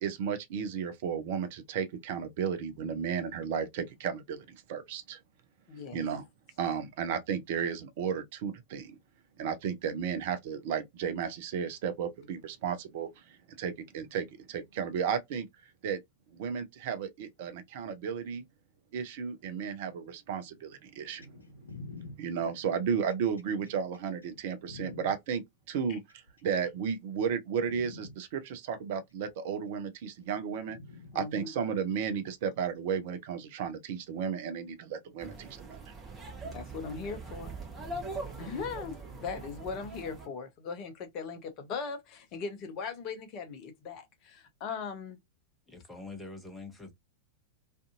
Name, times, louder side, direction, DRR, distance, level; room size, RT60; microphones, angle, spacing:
voice 1, 0.0-5.2 5.9-6.2 6.6-9.0 9.4-13.1 13.6-15.5 15.8-16.0 16.3-18.4 18.9-21.3 22.2-26.0 26.4-30.8 31.1-35.9, right 7 dB, 50° right, 0.5 m, -33 dB
voice 2, 5.7-6.0 25.9-26.0 31.1-31.5 36.4-37.5 38.4-45.2, left 5 dB, 40° left, 0.7 m, -39 dB
sound 1, 21.2-25.2 26.1-26.8 27.2-27.4 27.7-28.2 29.3-29.4 30.7-31.2 32.3-32.4, left 3 dB, 80° left, 0.5 m, -47 dB
sound 2, 35.2-40.3, right 2 dB, 20° right, 0.9 m, -42 dB
voice 3, 45.7-46.9, left 3 dB, 10° left, 0.9 m, -44 dB
2.5 x 2.5 x 2.3 m
figure-of-eight pair, 90°, 0 cm